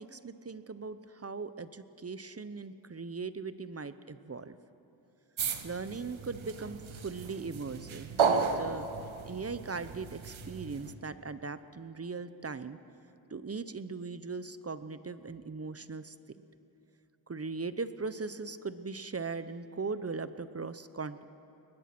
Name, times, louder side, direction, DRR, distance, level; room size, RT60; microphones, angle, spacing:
voice 1, 0.0-4.6 5.6-8.9 9.2-12.8 13.3-16.1 17.3-21.2, right 4 dB, 30° right, 13 dB, 0.8 m, -39 dB
sound 1, 5.4-10.9, right 5 dB, 85° right, 1.3 m, -34 dB
22.5 x 20.0 x 6.1 m, 2.9 s
cardioid pair, 55°, 46 cm